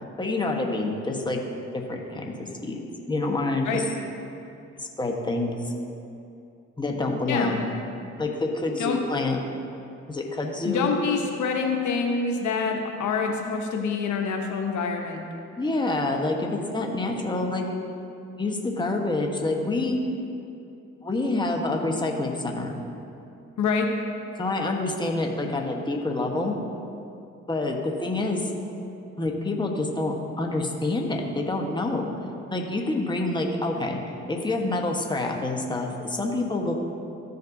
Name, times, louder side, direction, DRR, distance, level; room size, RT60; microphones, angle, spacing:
voice 1, 0.2-1.4 1.9-2.3 2.6-2.8 3.1-3.8 4.8-5.7 6.8-7.6 8.2-9.4 10.1-10.9 15.6-17.7 18.4-20.0 21.0-22.8 24.4-26.6 27.5-28.5 29.2-32.1 32.5-34.0 34.3-36.8, left 2 dB, 15° left, 1 dB, 1.2 m, -27 dB
voice 2, 7.3-7.6 8.8-9.0 10.6-15.2 23.6-23.9, left 5 dB, 70° left, 2 dB, 0.9 m, -26 dB
14.0 x 5.2 x 2.7 m, 2.6 s
supercardioid pair, 60°, 31 cm